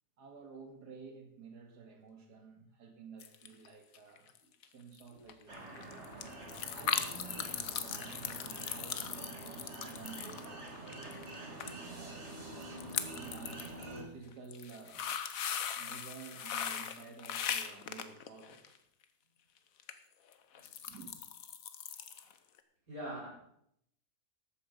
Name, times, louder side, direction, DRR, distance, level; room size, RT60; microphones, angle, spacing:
voice 1, 0.2-4.3 4.6-6.0 6.7-12.2 13.1-15.1 15.7-18.8 20.9-21.1, right 5 dB, 85° right, 4 dB, 2.4 m, -52 dB
sound 1, 3.2-3.7 3.9-4.4 4.6-4.7 4.9-5.0 5.3-11.3 11.6-11.7 12.0-12.1 12.6-13.8 14.3-18.8 19.8-19.9 20.3-22.3 22.6-22.7, left 8 dB, 65° left, 1.2 m, -39 dB
sound 2, 5.5-14.0, right 2 dB, 45° right, 2.7 m, -46 dB
sound 3, 10.6-14.7, right 1 dB, 30° right, 3.8 m, -59 dB
voice 2, 22.9-23.3, right 1 dB, 60° right, -5 dB, 5.5 m, -43 dB
13.5 x 8.6 x 5.3 m, 0.74 s
omnidirectional pair, 1.7 m